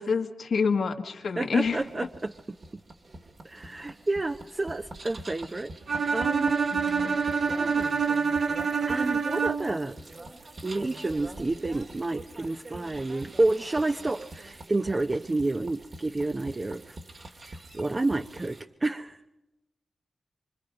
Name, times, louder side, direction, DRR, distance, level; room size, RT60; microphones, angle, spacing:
voice 1, 0.0-1.8 6.7-7.2, left 5 dB, 80° left, 2 dB, 1.7 m, -27 dB
voice 2, 1.4-2.8 3.4-5.7 6.1-8.4 8.9-10.0 10.6-17.0 17.4-19.2, right 2 dB, 35° right, 6 dB, 0.8 m, -30 dB
sound 1, 1.5-18.6, right 2 dB, 60° right, 2.4 m, -45 dB
Bowed string instrument, 5.9-9.9, right 5 dB, 80° right, 0.8 m, -26 dB
25.0 x 25.0 x 5.3 m, 0.98 s
cardioid pair, 45°, 0 cm